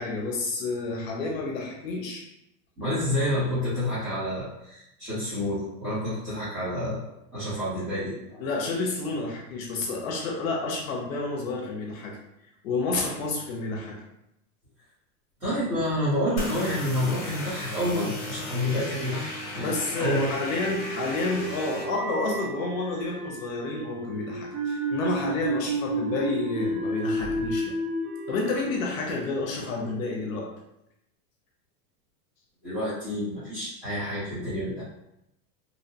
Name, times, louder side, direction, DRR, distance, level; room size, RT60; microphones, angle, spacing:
voice 1, 0.0-2.2 2.8-3.0 8.4-12.2 12.6-14.0 19.5-27.7 28.3-30.5, left 3 dB, 55° left, -1 dB, 0.6 m, -30 dB
voice 2, 2.8-7.0 7.3-8.5 15.4-20.3 32.6-34.8, left 1 dB, 10° right, -17 dB, 0.7 m, -29 dB
sound 1, 16.4-21.8, left 1 dB, 40° left, 1.0 m, -36 dB
sound 2, 20.5-29.7, right 1 dB, 50° right, 0.8 m, -32 dB
2.7 x 2.1 x 2.7 m, 0.84 s
supercardioid pair, 165°, 48 cm